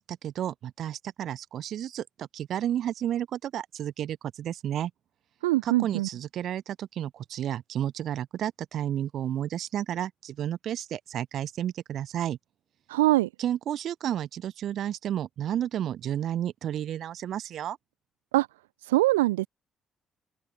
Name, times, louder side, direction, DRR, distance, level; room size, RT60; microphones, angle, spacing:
voice 1, 0.0-4.9 5.6-12.4 13.4-17.8, right 11 dB, 65° right, 5.6 m, -32 dB
voice 2, 5.4-6.1 12.9-13.3 18.3-18.5 18.8-19.5, right 18 dB, 85° right, 1.3 m, -23 dB
open air
hypercardioid pair, 50°, 0 cm